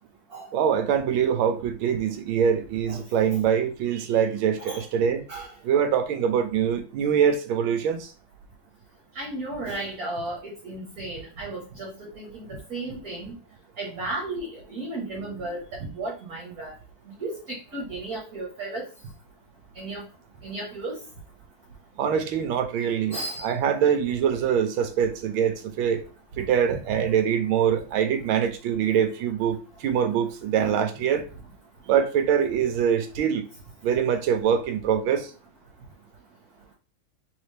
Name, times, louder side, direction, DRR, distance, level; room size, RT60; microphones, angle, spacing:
voice 1, 0.5-5.2 5.6-8.1 22.0-26.0 26.4-31.2 31.9-33.5 33.8-35.3, right 8 dB, 75° right, 1.4 m, -24 dB
voice 2, 9.1-11.9 12.1-12.3 12.7-13.3 13.8-15.6 15.9-16.7 17.2-17.4 17.7-18.8 19.7-20.0 20.4-21.0 23.1-23.5 26.7-27.0 30.6-30.8, right 2 dB, 45° right, 1.6 m, -34 dB
4.0 x 3.8 x 3.3 m
omnidirectional pair, 2.3 m